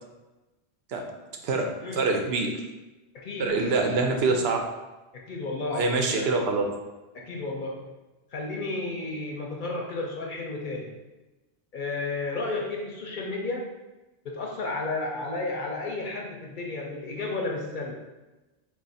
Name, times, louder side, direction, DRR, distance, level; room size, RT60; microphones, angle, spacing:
voice 1, 1.9-2.5 3.4-4.6 5.7-6.6, right 3 dB, 70° right, 3 dB, 0.8 m, -25 dB
voice 2, 3.2-3.9 5.1-6.3 7.1-7.9 8.3-10.9 11.7-13.7 14.2-18.0, left 2 dB, 55° left, 0 dB, 0.6 m, -32 dB
3.6 x 2.4 x 4.0 m, 1.1 s
omnidirectional pair, 1.1 m